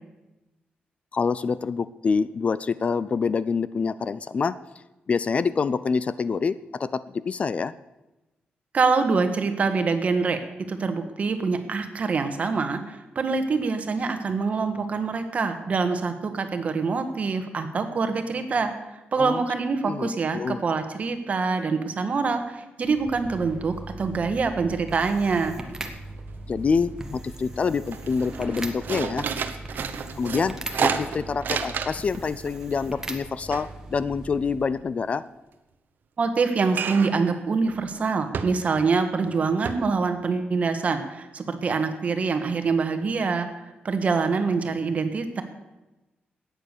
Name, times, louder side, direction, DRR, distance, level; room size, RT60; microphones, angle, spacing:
voice 1, 1.1-4.6 5.1-7.7 19.2-19.4 19.8-20.6 26.5-29.3 30.2-35.2, left 5 dB, 40° left, 17 dB, 0.4 m, -26 dB
voice 2, 8.7-10.4 10.7-25.6 36.2-45.4, right 4 dB, 45° right, 8 dB, 1.5 m, -25 dB
sound 1, 22.8-34.8, right 2 dB, 15° right, 1.3 m, -39 dB
sound 2, 25.3-25.9 26.2-27.0 27.4-27.6 27.9-32.2 32.5-34.9 36.7-37.3 37.7-37.8 38.3-38.9 39.3-39.4 39.7-39.8, right 7 dB, 65° right, 1.0 m, -31 dB
13.5 x 9.1 x 6.7 m, 1.0 s
wide cardioid pair, 130°, 3 cm